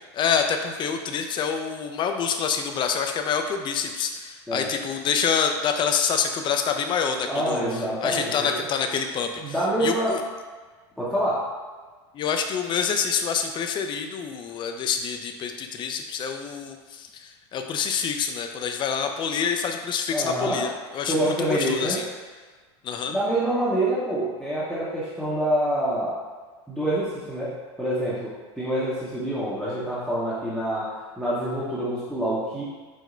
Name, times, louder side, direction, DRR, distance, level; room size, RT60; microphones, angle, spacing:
voice 1, 0.1-9.5 9.8-10.2 12.1-22.1 22.8-23.1, left 6 dB, 35° left, 5 dB, 0.5 m, -27 dB
voice 2, 7.3-8.6 9.4-10.2 11.0-11.4 20.1-20.7 21.1-22.0 23.1-26.1 26.7-30.9 31.2-32.6, right 1 dB, ahead, -9 dB, 0.8 m, -26 dB
4.9 x 2.1 x 3.8 m, 1.4 s
hypercardioid pair, 105°, 14 cm